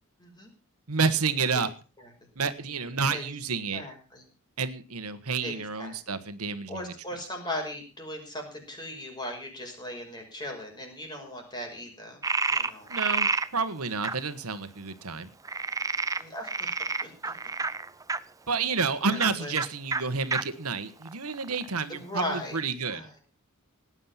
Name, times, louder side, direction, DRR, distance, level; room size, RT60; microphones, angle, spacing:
voice 1, 0.2-0.5 3.1-3.2 3.7-4.2 5.4-6.0 6.7-12.2 12.5-12.9 16.2-17.3 19.1-19.5 21.9-22.6 22.8-23.1, left 1 dB, 20° left, 2 dB, 5.7 m, -38 dB
voice 2, 0.9-1.7 2.3-3.8 4.6-6.9 12.9-15.3 18.5-23.1, right 5 dB, 85° right, 11 dB, 1.4 m, -30 dB
Frog, 12.2-13.5 14.0-14.1 15.4-18.2 19.1-19.3 19.6-19.7 19.9-20.0 20.3-20.4 21.0-21.8, right 4 dB, 15° right, 0.6 m, -29 dB
18.0 x 9.8 x 5.8 m, 0.36 s
head